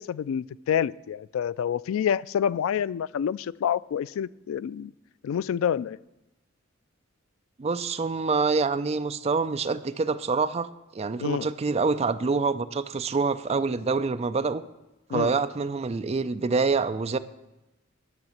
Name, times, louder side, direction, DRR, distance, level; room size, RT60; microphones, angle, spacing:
voice 1, 0.0-4.9 5.2-6.0 11.2-11.5 15.1-15.3, left 8 dB, 85° left, 17 dB, 0.3 m, -28 dB
voice 2, 7.6-14.6 15.1-17.2, right 4 dB, 30° right, 11 dB, 0.4 m, -26 dB
10.5 x 6.0 x 7.2 m, 0.99 s
head